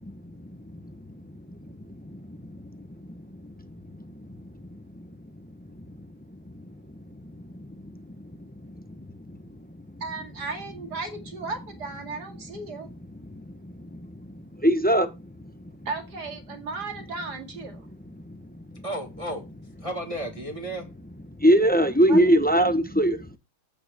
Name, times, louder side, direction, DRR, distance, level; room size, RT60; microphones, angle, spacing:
voice 1, 0.0-4.1 4.4-5.1 5.7-6.0 6.5-9.7 13.3-15.5 18.2-18.4 21.4-23.3, equal, 10° left, 0.7 m, -26 dB
voice 2, 10.0-12.9 15.9-17.9 22.1-22.7, right 3 dB, 80° right, 2.8 m, -35 dB
voice 3, 18.8-19.4 19.8-20.9, right 1 dB, 20° right, 1.5 m, -33 dB
14.0 x 8.9 x 3.5 m
omnidirectional pair, 1.7 m